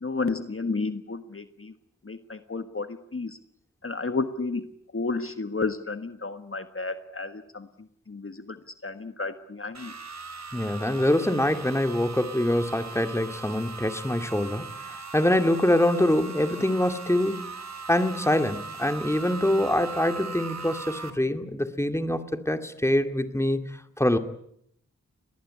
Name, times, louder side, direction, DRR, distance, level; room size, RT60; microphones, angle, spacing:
voice 1, 0.0-1.7 2.0-3.4 3.8-4.7 4.9-7.7 8.1-8.6 8.8-9.9, left 3 dB, 45° left, 9 dB, 1.5 m, -32 dB
sound 1, 9.7-21.1, right 4 dB, 60° right, 3.0 m, -39 dB
voice 2, 10.5-17.5 17.9-23.6 24.0-24.2, left 1 dB, 10° left, 8 dB, 2.3 m, -24 dB
23.0 x 19.0 x 9.8 m, 0.71 s
wide cardioid pair, 60°, 31 cm